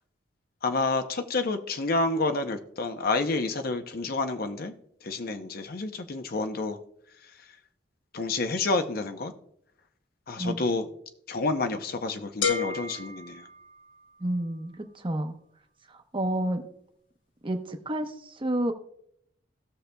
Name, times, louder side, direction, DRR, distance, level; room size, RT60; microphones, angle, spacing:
voice 1, 0.6-4.7 5.0-6.8 8.1-9.3 10.3-10.9 11.3-13.4, left 3 dB, 55° left, 7 dB, 0.7 m, -29 dB
sound 1, 12.4-14.3, left 5 dB, 90° left, 1.0 m, -32 dB
voice 2, 14.2-15.3 15.9-16.7 17.4-18.7, right 1 dB, 30° right, 6 dB, 0.9 m, -30 dB
17.5 x 6.6 x 2.2 m, 0.71 s
head